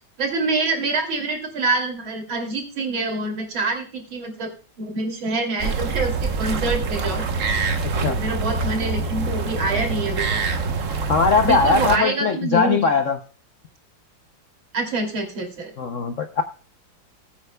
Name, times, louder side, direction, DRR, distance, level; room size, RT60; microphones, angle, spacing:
voice 1, 0.2-4.5 4.8-7.2 8.1-10.4 11.4-12.9 14.7-15.7, right 3 dB, 75° right, 3 dB, 3.6 m, -26 dB
sound 1, 5.6-12.0, right 4 dB, 45° right, 1.4 m, -25 dB
voice 2, 11.1-13.2 15.8-16.4, left 4 dB, 60° left, 8 dB, 0.8 m, -20 dB
20.5 x 8.8 x 2.2 m, 0.38 s
omnidirectional pair, 2.2 m